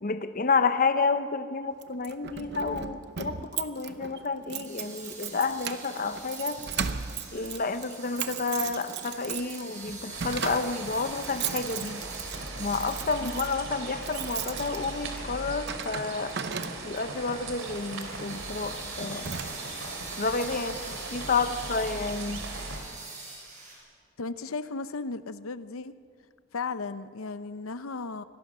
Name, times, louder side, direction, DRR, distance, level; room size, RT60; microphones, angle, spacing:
voice 1, 0.0-6.6 7.3-12.0 12.6-16.3 16.8-19.3 20.2-22.4, left 4 dB, 40° left, 10 dB, 0.7 m, -30 dB
Keys jangling, 1.8-17.2 17.9-18.2 18.6-18.8 19.0-19.9, right 7 dB, 55° right, 0.8 m, -37 dB
sound 1, 4.6-23.8, right 3 dB, 35° right, 6.4 m, -45 dB
sound 2, 10.1-22.8, right 2 dB, 70° right, 3.2 m, -39 dB
voice 2, 24.2-25.9 26.5-28.2, left 4 dB, 85° left, 13 dB, 0.7 m, -35 dB
24.5 x 17.5 x 6.2 m, 2.2 s
head